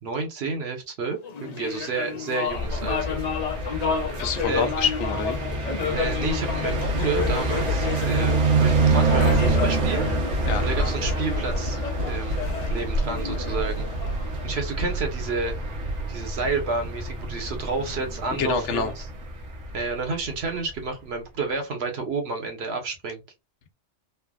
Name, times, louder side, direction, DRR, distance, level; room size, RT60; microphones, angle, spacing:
voice 1, 0.0-3.3 4.5-4.7 5.9-10.1 10.6-13.9 14.4-15.6 16.1-19.1 19.7-23.2, right 4 dB, 65° right, 1.0 m, -30 dB
sound 1, 1.2-14.9, left 6 dB, 55° left, 0.5 m, -32 dB
sound 2, 2.5-20.4, right 2 dB, 85° right, 1.2 m, -26 dB
voice 2, 4.2-5.4 10.5-10.7 18.4-18.9, left 5 dB, 75° left, 1.0 m, -26 dB
3.3 x 2.1 x 2.2 m
omnidirectional pair, 1.2 m